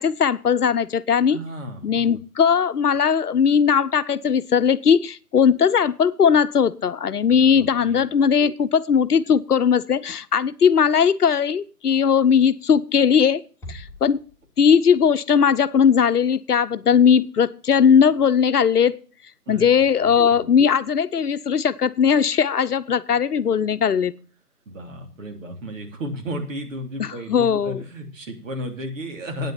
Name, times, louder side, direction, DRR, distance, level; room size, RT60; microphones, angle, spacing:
voice 1, 0.0-1.4 1.8-13.4 13.7-14.2 14.6-19.0 19.5-24.1 27.0-27.8, left 7 dB, 75° left, 13 dB, 0.9 m, -19 dB
voice 2, 1.3-2.2 7.4-8.0 19.5-20.1 24.7-29.5, equal, 55° right, 3 dB, 3.1 m, -34 dB
Bass drum, 13.6-15.0, equal, 5° left, 1.4 m, -42 dB
9.6 x 9.2 x 5.6 m, 0.39 s
figure-of-eight pair, 145°, 46 cm